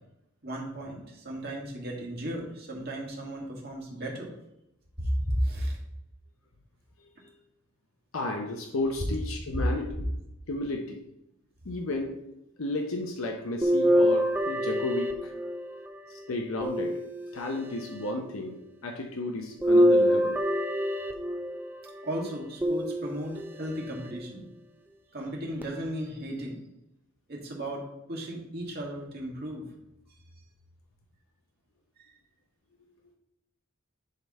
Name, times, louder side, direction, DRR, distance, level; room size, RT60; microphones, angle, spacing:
voice 1, 0.4-4.3 5.0-5.8 22.0-24.4 25.1-26.6 27.3-29.6 32.0-32.1, equal, 45° right, -2 dB, 1.9 m, -34 dB
voice 2, 8.1-10.1 10.5-11.0 11.6-12.2 12.6-15.3 16.1-17.0 17.3-20.4, left 2 dB, 70° left, 3 dB, 0.7 m, -33 dB
sound 1, 13.6-15.9 16.6-17.6 19.6-21.7 22.6-23.5 24.1-24.2 25.6-25.7, equal, 10° right, 0.5 m, -25 dB
10.0 x 3.5 x 4.2 m, 0.86 s
head